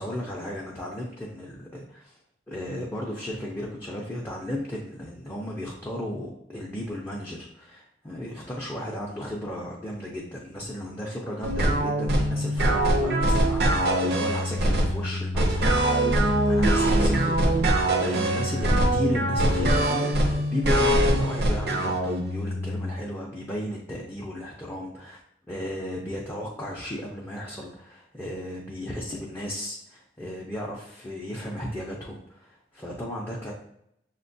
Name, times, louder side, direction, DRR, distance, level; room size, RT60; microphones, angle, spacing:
voice 1, 0.0-2.1 2.5-16.1 16.5-25.2 25.5-33.5, left 1 dB, 15° left, -4 dB, 0.4 m, -35 dB
sound 1, 11.4-22.9, right 1 dB, 65° right, 0.5 m, -23 dB
6.1 x 2.2 x 2.6 m, 0.76 s
head